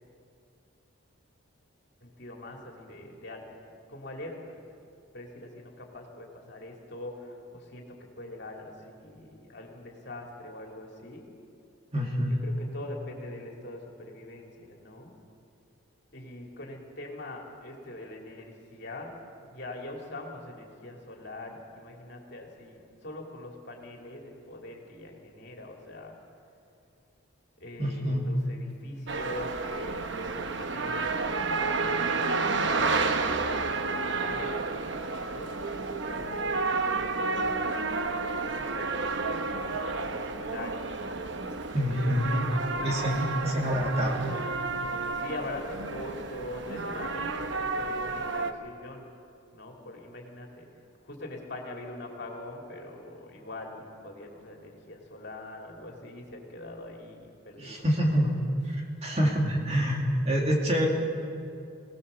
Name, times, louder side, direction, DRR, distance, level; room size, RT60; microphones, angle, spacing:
voice 1, 2.0-3.6 3.9-4.6 5.1-11.3 12.3-15.1 16.1-26.2 27.6-40.9 42.0-43.9 45.1-49.1 49.5-50.7 51.0-58.3, left 1 dB, 50° left, 0 dB, 2.9 m, -43 dB
voice 2, 11.9-12.4 27.8-28.3 41.7-42.4 42.8-44.2 57.6-58.3 59.0-60.9, equal, 30° right, -1 dB, 2.6 m, -26 dB
sound 1, 29.1-48.5, right 3 dB, 55° right, 1.0 m, -31 dB
22.0 x 18.0 x 7.0 m, 2.5 s
head